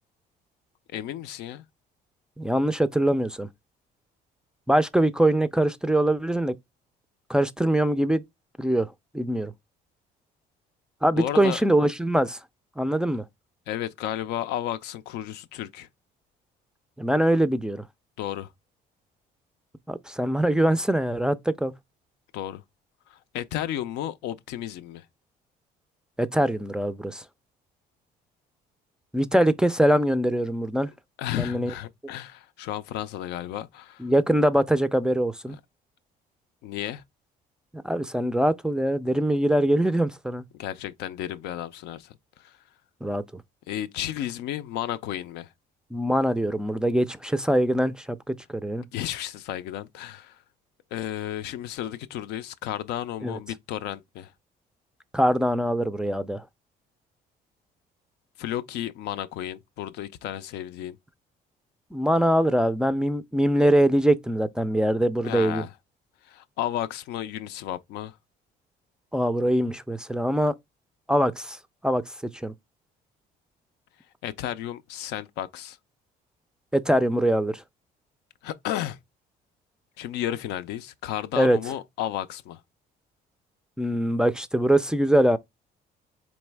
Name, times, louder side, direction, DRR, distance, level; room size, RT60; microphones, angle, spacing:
voice 1, 0.9-1.6 11.1-11.6 13.7-15.9 18.2-18.5 22.3-22.6 23.1-25.0 31.2-34.1 35.5-35.6 36.6-37.0 40.5-42.6 43.7-45.5 48.9-50.4 50.9-54.3 58.4-61.0 65.2-65.7 66.2-68.2 74.2-75.8 78.4-79.0 80.0-82.6, left 12 dB, 85° left, 0.5 m, -33 dB
voice 2, 2.4-3.5 4.7-6.6 7.3-8.2 8.6-8.9 9.1-9.5 11.0-12.4 12.8-13.2 17.0-17.8 19.9-21.7 26.2-27.2 29.1-30.9 31.4-31.7 34.0-35.6 37.8-40.4 43.0-43.4 45.9-48.8 53.2-53.4 55.1-56.4 61.9-65.6 69.1-70.5 71.1-71.6 71.8-72.5 76.7-77.6 81.4-81.6 83.8-85.4, right 1 dB, 5° right, 0.3 m, -23 dB
4.1 x 3.1 x 3.3 m
cardioid pair, 110°, 17 cm